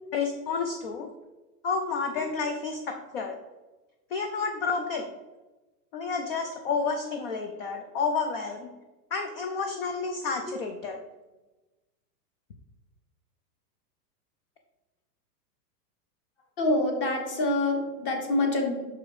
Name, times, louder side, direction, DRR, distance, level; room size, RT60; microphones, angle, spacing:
voice 1, 0.1-1.1 1.6-3.3 4.1-5.1 5.9-8.7 9.1-11.0, left 5 dB, 40° left, 5 dB, 0.4 m, -30 dB
voice 2, 16.6-18.9, left 2 dB, 20° left, 3 dB, 0.9 m, -27 dB
6.1 x 4.9 x 4.6 m, 1.1 s
supercardioid pair, 170°, 49 cm